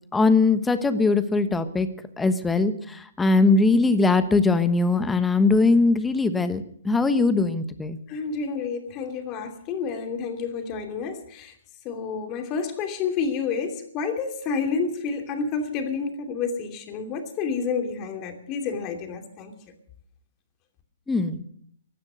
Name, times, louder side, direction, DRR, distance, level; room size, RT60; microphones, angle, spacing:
voice 1, 0.1-1.9 2.2-8.0 21.1-21.4, left 3 dB, 10° left, 11 dB, 1.1 m, -21 dB
voice 2, 8.1-11.5 11.8-19.5, left 5 dB, 30° left, 5 dB, 2.8 m, -29 dB
16.5 x 12.0 x 6.3 m, 0.64 s
hypercardioid pair, 130°, 0 cm